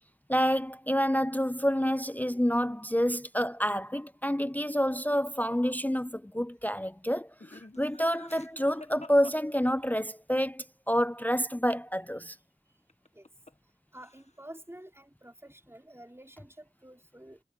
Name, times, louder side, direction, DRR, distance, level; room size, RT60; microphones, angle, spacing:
voice 1, 0.3-12.4, equal, 10° left, 0.5 m, -28 dB
Laughter, 7.4-10.1 12.9-13.7 14.0-14.5, left 2 dB, 40° left, 1.5 m, -51 dB
voice 2, 13.9-17.4, right 1 dB, 15° right, 5.1 m, -49 dB
wide cardioid pair, 55°, 17 cm